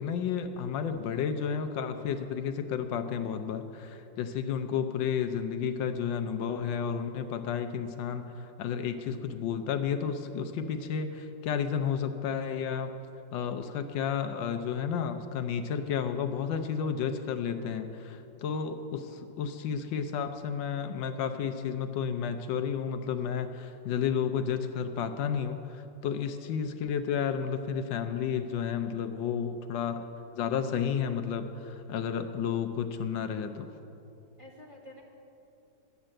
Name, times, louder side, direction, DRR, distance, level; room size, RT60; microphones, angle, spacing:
voice 1, 0.0-12.9 13.3-30.1 30.4-33.7, left 7 dB, 80° left, 7 dB, 1.3 m, -32 dB
voice 2, 7.2-7.5 34.4-35.0, left 1 dB, 15° right, -3 dB, 1.7 m, -51 dB
11.0 x 8.2 x 7.5 m, 2.9 s
omnidirectional pair, 2.1 m